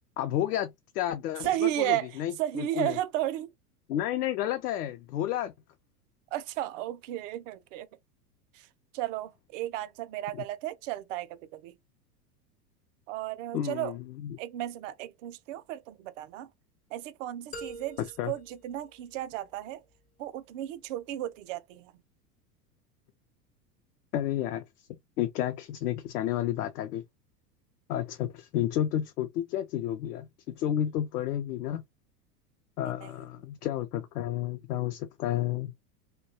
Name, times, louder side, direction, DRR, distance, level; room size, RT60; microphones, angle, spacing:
voice 1, 0.2-3.0 3.9-5.5 10.3-10.4 13.5-14.4 18.2-18.3 24.1-24.6 25.2-27.0 27.9-31.8 32.8-35.7, left 12 dB, 75° left, 0.5 m, -31 dB
voice 2, 1.4-3.5 6.3-7.9 8.5-8.7 8.9-11.8 13.1-14.0 14.4-16.5 16.9-18.0 18.3-19.8 20.2-21.9 32.8-33.1, right 14 dB, 55° right, 0.5 m, -34 dB
sound 1, 17.5-19.6, right 1 dB, 20° left, 0.3 m, -46 dB
2.2 x 2.2 x 2.6 m
hypercardioid pair, 90°, 47 cm